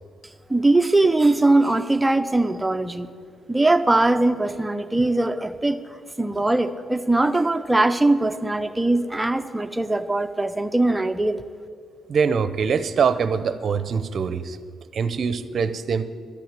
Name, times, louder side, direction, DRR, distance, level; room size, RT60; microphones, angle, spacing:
voice 1, 0.5-3.1 3.5-11.4, right 2 dB, 10° right, 9 dB, 0.6 m, -21 dB
voice 2, 12.1-14.6 14.9-16.0, right 6 dB, 55° right, 12 dB, 0.6 m, -23 dB
12.0 x 6.4 x 8.7 m, 2.3 s
cardioid pair, 95°, 0 cm